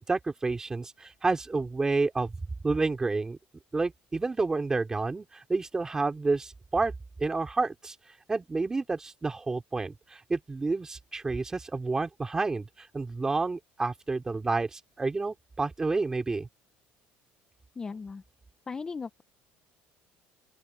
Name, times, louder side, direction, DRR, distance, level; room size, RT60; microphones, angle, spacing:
voice 1, 0.0-2.4 2.6-3.4 3.7-6.9 7.2-8.0 8.3-16.5, right 3 dB, 15° right, 3.6 m, -29 dB
voice 2, 17.8-18.2 18.7-19.2, left 5 dB, 20° left, 0.4 m, -37 dB
open air
cardioid pair, 145°, 4 cm